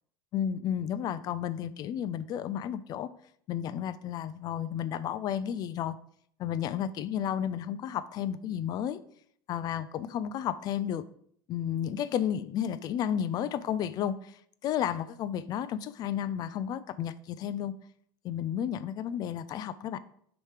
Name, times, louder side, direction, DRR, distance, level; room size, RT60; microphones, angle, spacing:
voice 1, 0.3-3.1 3.5-6.0 6.4-9.0 9.5-11.0 11.5-17.7 18.2-20.0, left 9 dB, 35° left, 0.3 m, -32 dB
6.5 x 3.0 x 4.9 m
supercardioid pair, 140°, 11 cm